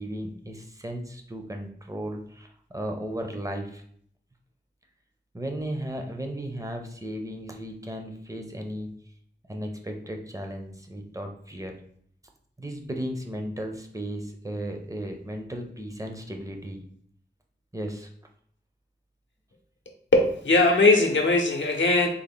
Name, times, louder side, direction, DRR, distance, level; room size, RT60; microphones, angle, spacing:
voice 1, 0.0-3.8 5.3-8.9 9.5-11.8 12.6-16.8 17.7-18.1, right 1 dB, 15° right, 3 dB, 0.6 m, -35 dB
voice 2, 20.1-22.1, left 2 dB, 80° left, 2 dB, 0.7 m, -20 dB
3.6 x 2.1 x 3.5 m, 0.62 s
wide cardioid pair, 55°, 19 cm